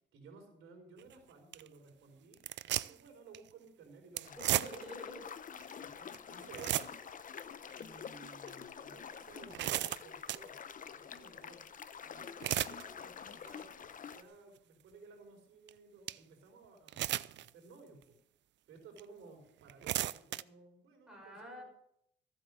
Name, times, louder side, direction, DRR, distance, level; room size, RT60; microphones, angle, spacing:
voice 1, 0.1-4.6 5.8-7.0 7.7-10.5 10.9-11.6 12.0-13.7 14.0-18.2 18.7-21.6, right 4 dB, 80° right, 3 dB, 4.5 m, -56 dB
sound 1, 1.0-1.1 1.5-1.7 2.3-3.1 3.3-3.5 4.2-5.0 5.6-5.7 6.1-6.2 6.4-7.2 7.7-7.8 8.5-8.6 9.2-10.5 12.2-12.8 13.3-13.6 14.1-14.2 15.7-15.8 16.1-16.2 16.9-17.5 18.0-18.1 19.0-19.1 19.6-20.4, right 13 dB, 65° right, 0.5 m, -35 dB
sound 2, 4.2-14.2, left 7 dB, 45° left, 0.8 m, -48 dB
voice 2, 4.4-5.2 5.5-5.8 21.1-21.6, equal, 5° right, -1 dB, 5.4 m, -48 dB
15.0 x 8.3 x 6.4 m, 0.73 s
cardioid pair, 90°, 20 cm